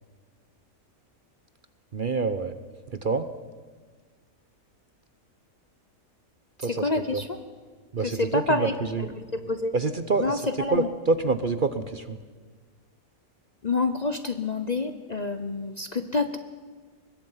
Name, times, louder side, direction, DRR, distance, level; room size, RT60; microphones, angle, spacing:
voice 1, 1.9-2.5 2.9-3.3 6.6-7.2 7.9-9.1 9.7-10.4 10.7-12.2, right 3 dB, 45° right, 11 dB, 0.9 m, -27 dB
voice 2, 6.6-7.4 8.0-9.7 10.2-10.9 13.6-16.4, left 3 dB, 35° left, 9 dB, 0.8 m, -28 dB
24.0 x 21.0 x 5.7 m, 1.5 s
omnidirectional pair, 1.5 m